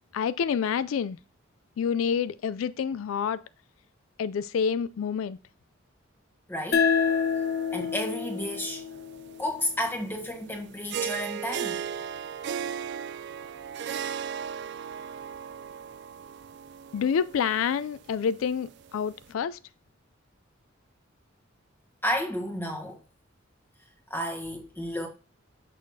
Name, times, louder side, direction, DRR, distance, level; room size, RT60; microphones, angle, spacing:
voice 1, 0.1-1.2 1.8-3.4 4.2-5.4 16.9-19.6, left 7 dB, 80° left, 0.3 m, -28 dB
voice 2, 6.5-6.9 7.7-8.9 9.4-11.8 22.0-23.0 24.1-25.1, equal, 10° left, 1.3 m, -32 dB
sound 1, 6.7-9.9, left 6 dB, 50° left, 0.8 m, -28 dB
sound 2, 6.9-19.3, right 7 dB, 60° right, 0.4 m, -38 dB
6.3 x 6.3 x 2.7 m
head